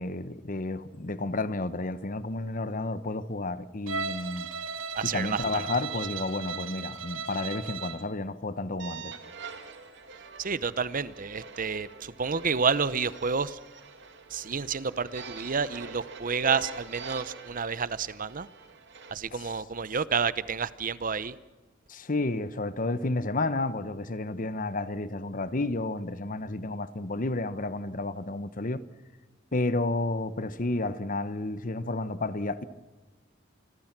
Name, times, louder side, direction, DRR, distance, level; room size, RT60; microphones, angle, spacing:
voice 1, 0.0-4.5 5.1-9.2 19.3-19.5 21.9-28.8 29.5-32.6, left 2 dB, 45° left, 1.1 m, -31 dB
Bowed string instrument, 3.9-8.1, right 5 dB, 85° right, 1.4 m, -36 dB
voice 2, 5.0-5.6 10.4-13.6 14.3-18.5 19.1-21.4, right 5 dB, 45° right, 0.8 m, -30 dB
sound 1, 8.8-19.1, right 4 dB, 65° right, 2.5 m, -44 dB
28.0 x 21.5 x 6.0 m
head